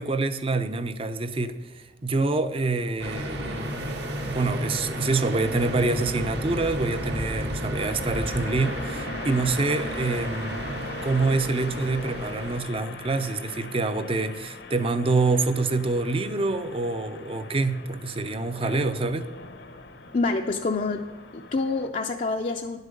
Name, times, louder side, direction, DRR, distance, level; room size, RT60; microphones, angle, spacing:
voice 1, 0.0-19.3, right 3 dB, 30° right, 11 dB, 0.6 m, -26 dB
sound 1, 3.0-12.6, equal, 65° right, 1.4 m, -32 dB
sound 2, 7.8-21.9, left 3 dB, 70° left, 0.8 m, -41 dB
voice 2, 20.1-21.1 21.3-22.8, left 3 dB, 40° left, 2 dB, 0.5 m, -27 dB
11.0 x 8.1 x 5.2 m, 1.3 s
head